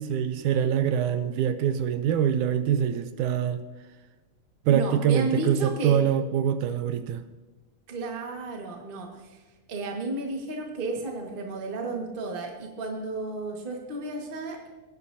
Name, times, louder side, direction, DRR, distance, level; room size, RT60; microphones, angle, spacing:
voice 1, 0.0-3.6 4.7-7.2, right 9 dB, 80° right, 10 dB, 2.0 m, -24 dB
voice 2, 4.7-6.0 7.9-9.4 9.7-14.7, right 3 dB, 35° right, 1 dB, 0.9 m, -32 dB
20.0 x 9.8 x 2.7 m, 1.2 s
omnidirectional pair, 3.6 m